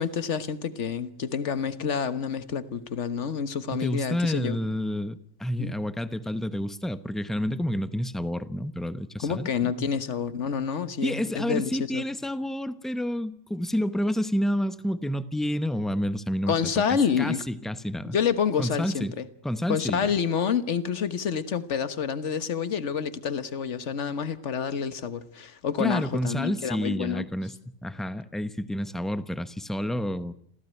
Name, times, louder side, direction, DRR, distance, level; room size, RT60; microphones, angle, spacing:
voice 1, 0.0-4.6 5.5-5.7 9.2-12.0 16.5-17.4 18.1-19.2 19.7-27.2, left 7 dB, 50° left, 1.5 m, -28 dB
voice 2, 3.7-9.9 11.0-16.6 16.9-18.2 18.6-19.2 19.4-20.1 25.8-30.3, equal, ahead, 0.7 m, -29 dB
27.0 x 16.0 x 9.1 m
omnidirectional pair, 1.6 m